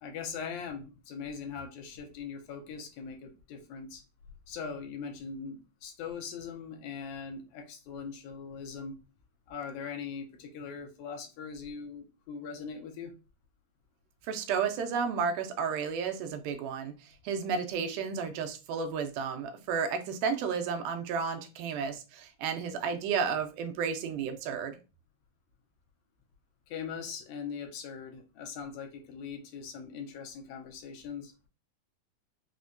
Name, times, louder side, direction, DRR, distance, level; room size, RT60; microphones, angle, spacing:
voice 1, 0.0-4.0 4.5-9.0 9.5-13.1 26.7-31.5, left 6 dB, 80° left, 1.9 m, -41 dB
voice 2, 14.3-16.9 17.2-24.8, right 6 dB, 90° right, 2.1 m, -32 dB
5.3 x 2.1 x 2.4 m
omnidirectional pair, 3.5 m